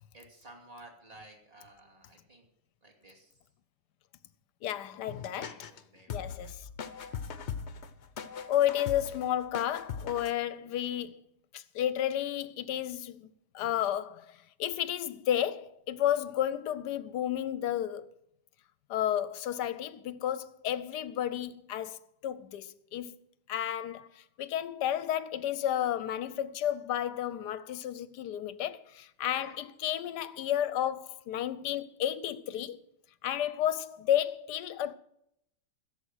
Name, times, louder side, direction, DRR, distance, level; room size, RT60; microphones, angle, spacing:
voice 1, 0.1-2.4 2.8-3.3 5.3-6.5 29.2-29.5, right 2 dB, 20° right, 2.6 m, -54 dB
voice 2, 4.6-5.6 6.1-6.7 8.5-11.2 11.5-18.1 18.9-23.1 23.5-32.8 33.2-34.9, left 11 dB, 70° left, 1.1 m, -32 dB
sound 1, 5.1-5.8 6.1-10.3, left 6 dB, 50° left, 0.8 m, -40 dB
16.0 x 7.4 x 6.3 m
omnidirectional pair, 2.0 m